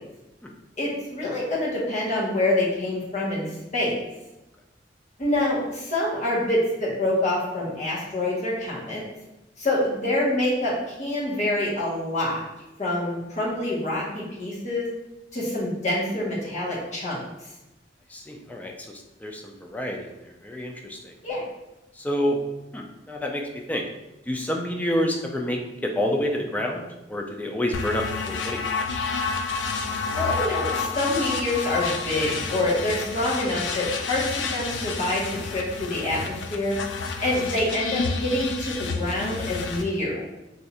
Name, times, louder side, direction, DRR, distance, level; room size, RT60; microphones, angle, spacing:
voice 1, 0.8-3.5 3.7-4.0 5.2-9.0 9.6-12.4 12.8-14.9 15.3-17.2 21.2-21.4 30.1-36.8 37.2-40.3, left 1 dB, 40° left, -6 dB, 1.0 m, -26 dB
voice 2, 18.1-21.1 22.0-22.4 22.7-23.9 24.3-28.8, equal, 10° left, 1 dB, 0.3 m, -29 dB
sound 1, 27.7-39.8, left 4 dB, 85° left, 0.4 m, -30 dB
2.6 x 2.4 x 4.1 m, 0.98 s
head